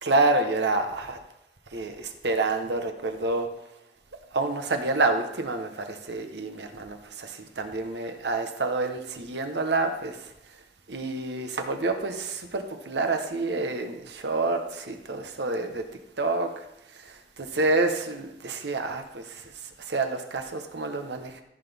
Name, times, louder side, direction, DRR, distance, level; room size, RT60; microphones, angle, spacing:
voice 1, 0.0-1.2 1.7-3.5 4.3-10.3 10.9-15.8 16.2-16.6 16.9-19.4 19.8-21.4, right 3 dB, 70° right, 1.1 m, -28 dB
15.0 x 6.0 x 3.5 m
head